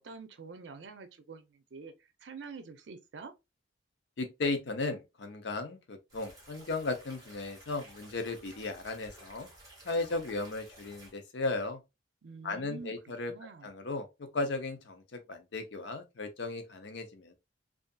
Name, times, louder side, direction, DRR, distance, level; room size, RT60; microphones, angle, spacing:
voice 1, 0.0-1.9 2.2-3.3 12.2-13.7, right 4 dB, 85° right, 0.5 m, -47 dB
voice 2, 4.2-9.5 9.8-11.8 12.4-13.3 13.6-17.3, left 3 dB, 80° left, 0.6 m, -36 dB
sound 1, 6.1-11.1, right 1 dB, 20° right, 1.2 m, -54 dB
2.6 x 2.4 x 2.2 m
head